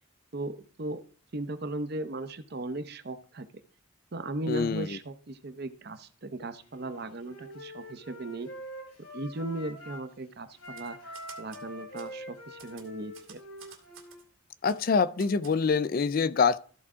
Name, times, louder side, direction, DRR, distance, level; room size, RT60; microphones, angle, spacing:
voice 1, 0.3-1.0 1.3-3.5 4.1-8.5 9.1-13.4, right 2 dB, 50° right, 0.7 m, -37 dB
voice 2, 4.5-4.9 14.6-16.6, left 5 dB, 45° left, 0.3 m, -25 dB
Wind instrument woodwind instrument, 6.7-10.1 10.5-14.2, equal, 85° left, 2.7 m, -45 dB
Typewriter, 10.6-11.6 12.0-12.1 12.6-14.2 14.6-14.8 15.2-15.6, right 7 dB, 75° right, 2.1 m, -51 dB
14.0 x 4.7 x 3.7 m
head